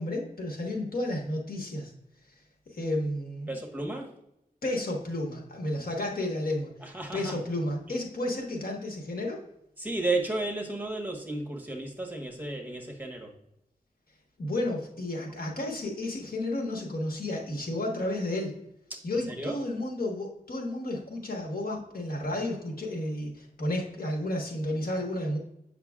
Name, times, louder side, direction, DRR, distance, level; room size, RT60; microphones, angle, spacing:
voice 1, 0.0-1.9 2.7-3.5 4.6-6.7 7.1-9.4 14.4-18.5 19.0-25.4, left 1 dB, 80° left, 0 dB, 1.3 m, -32 dB
voice 2, 3.5-4.1 6.8-7.4 9.8-13.3 19.3-19.6, right 2 dB, 10° right, 0 dB, 1.3 m, -33 dB
7.9 x 5.8 x 2.4 m, 0.80 s
wide cardioid pair, 105°, 15 cm